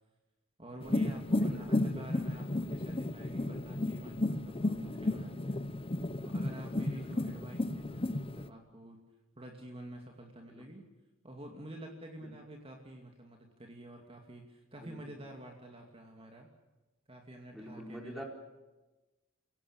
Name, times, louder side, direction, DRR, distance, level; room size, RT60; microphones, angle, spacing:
voice 1, 0.6-5.6 6.2-9.0 9.4-10.8 11.2-16.5 17.1-18.2, right 1 dB, 30° right, 2 dB, 2.6 m, -48 dB
sound 1, 0.8-8.5, left 2 dB, 25° left, 0.8 m, -33 dB
voice 2, 14.8-15.1 17.5-18.2, equal, ahead, 2 dB, 4.0 m, -46 dB
29.0 x 17.5 x 8.8 m, 1.1 s
head